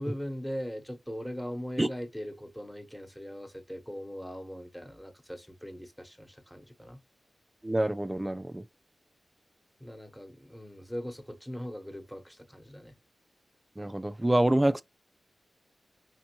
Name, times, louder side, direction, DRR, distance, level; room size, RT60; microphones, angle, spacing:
voice 1, 0.0-7.0 9.8-13.0, equal, 5° left, 1.1 m, -40 dB
voice 2, 7.6-8.6 13.8-14.8, right 1 dB, 15° right, 0.3 m, -26 dB
5.2 x 2.9 x 2.9 m
cardioid pair, 60°, 0 cm